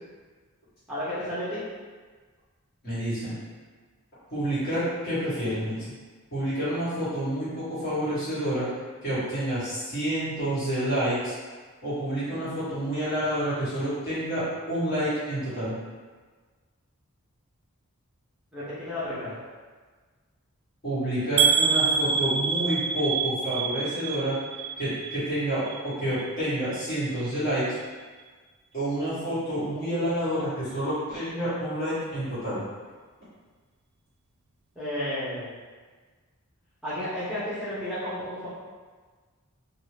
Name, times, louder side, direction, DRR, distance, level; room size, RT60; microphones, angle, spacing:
voice 1, 0.9-1.6 18.5-19.4 34.8-35.6 36.8-38.5, left 1 dB, 5° right, -12 dB, 0.7 m, -32 dB
voice 2, 2.8-3.4 4.3-5.8 6.3-8.7 9.0-11.3 11.8-15.8 20.8-24.4 24.8-27.6 28.7-32.6, right 1 dB, 45° left, -12 dB, 1.5 m, -28 dB
sound 1, 21.4-25.3 25.6-26.3 26.7-26.9 27.2-27.3, right 6 dB, 50° right, 0.3 m, -26 dB
2.7 x 2.4 x 3.2 m, 1.4 s
head